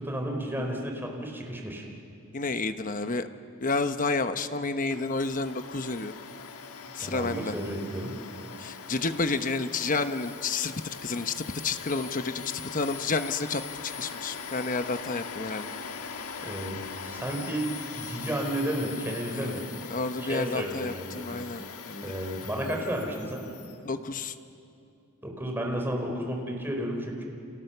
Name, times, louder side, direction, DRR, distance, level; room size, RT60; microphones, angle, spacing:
voice 1, 0.0-1.9 7.0-8.2 16.4-19.6 20.2-21.3 22.0-23.5 25.2-27.2, right 1 dB, 10° right, 1 dB, 4.0 m, -32 dB
voice 2, 2.3-3.3 3.6-6.1 6.9-7.5 8.6-12.4 12.7-15.7 19.3-22.1 23.8-24.3, left 3 dB, 35° left, 9 dB, 1.0 m, -30 dB
Domestic sounds home sounds, 4.9-23.8, left 6 dB, 85° left, 1.6 m, -41 dB
30.0 x 28.5 x 6.9 m, 2.6 s
head